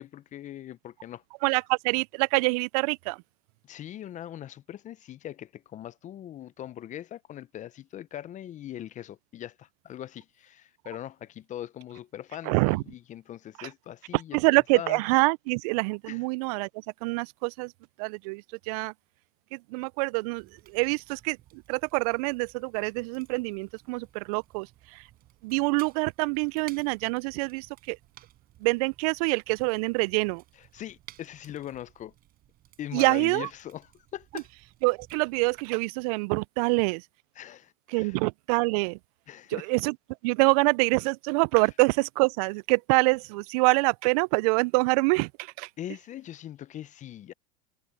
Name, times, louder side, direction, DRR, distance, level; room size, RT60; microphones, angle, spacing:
voice 1, 0.0-1.2 3.6-14.4 14.7-15.0 16.1-16.2 30.6-32.1 32.8-34.5 37.4-38.2 39.3-39.7 45.8-47.3, left 11 dB, 35° left, 0.9 m, -41 dB
voice 2, 1.4-3.2 12.5-12.8 13.6-13.7 14.3-16.7 17.0-17.7 18.0-18.9 19.5-24.7 24.9-25.0 25.4-28.0 28.6-30.4 32.9-33.5 34.8-37.0 37.9-39.0 39.5-39.9 40.2-45.7, right 29 dB, 60° right, 0.5 m, -26 dB
Fire, 20.4-35.7, right 13 dB, 45° right, 6.2 m, -56 dB
hypercardioid pair, 90°, 21 cm